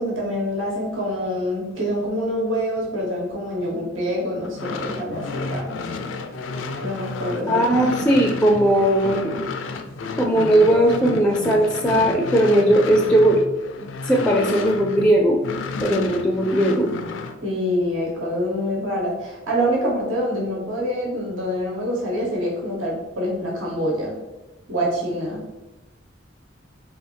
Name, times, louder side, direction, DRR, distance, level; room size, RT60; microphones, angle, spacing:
voice 1, 0.0-5.7 6.8-8.0 17.4-24.1 24.7-25.4, equal, 85° right, -3 dB, 1.3 m, -26 dB
sound 1, 4.4-15.1 15.4-17.4, left 4 dB, 70° left, 0.4 m, -31 dB
voice 2, 7.5-9.3 10.2-13.4 13.8-15.4 15.8-16.9, right 1 dB, 5° left, 1 dB, 0.4 m, -18 dB
3.5 x 2.7 x 4.5 m, 1.0 s
head